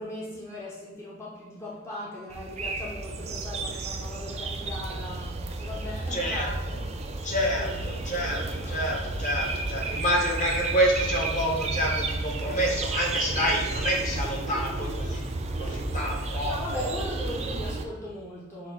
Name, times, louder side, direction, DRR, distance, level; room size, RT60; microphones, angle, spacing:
voice 1, 0.0-7.3 7.6-8.0 16.4-18.7, left 1 dB, 15° left, -6 dB, 0.7 m, -39 dB
sound 1, 2.3-17.8, right 2 dB, 30° right, 0.4 m, -32 dB
voice 2, 6.1-6.8 7.2-15.2 15.6-16.9, equal, 40° left, -1 dB, 1.0 m, -28 dB
6.5 x 2.2 x 3.8 m, 1.1 s
head